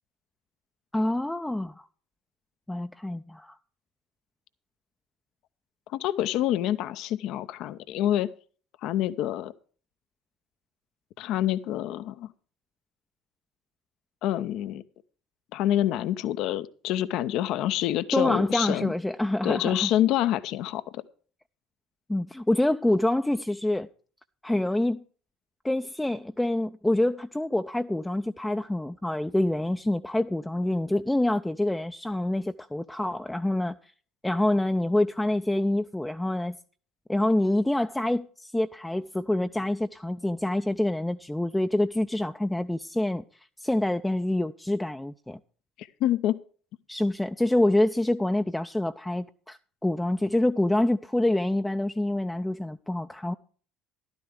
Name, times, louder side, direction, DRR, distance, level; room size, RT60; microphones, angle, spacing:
voice 1, 0.9-1.8 2.7-3.5 18.1-19.9 22.1-23.9 24.4-25.0 25.6-33.8 34.2-36.6 37.1-43.2 43.6-45.4 46.9-53.3, left 1 dB, 5° left, 0.4 m, -26 dB
voice 2, 5.9-8.3 8.8-9.5 11.2-12.3 14.2-14.8 15.5-18.9 19.4-21.0 46.0-46.4, left 12 dB, 55° left, 0.5 m, -27 dB
13.5 x 12.0 x 3.4 m
figure-of-eight pair, 60°, 0 cm